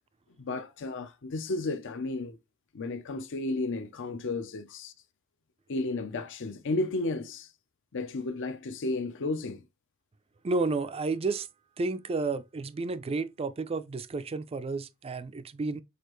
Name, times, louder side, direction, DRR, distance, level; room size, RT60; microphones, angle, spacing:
voice 1, 0.4-2.4 2.7-4.9 5.7-7.5 7.9-9.6, left 2 dB, 60° left, 0.6 m, -33 dB
voice 2, 10.4-11.5 11.8-15.8, right 3 dB, 30° right, 0.4 m, -31 dB
6.5 x 2.5 x 3.0 m
head